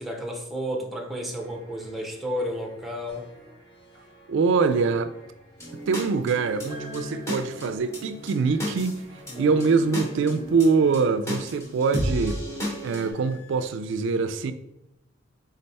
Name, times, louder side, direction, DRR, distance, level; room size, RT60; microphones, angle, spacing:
voice 1, 0.0-3.3, equal, ahead, 0.7 m, -32 dB
sound 1, 1.4-11.6, right 1 dB, 65° left, 1.4 m, -53 dB
voice 2, 4.3-5.1 5.9-9.0 9.4-12.4 12.8-14.5, right 4 dB, 65° right, 0.4 m, -24 dB
sound 2, 5.6-13.1, equal, 15° left, 1.1 m, -34 dB
sound 3, 6.7-11.4 11.7-13.7, left 1 dB, 40° left, 0.9 m, -53 dB
3.8 x 3.3 x 4.1 m
head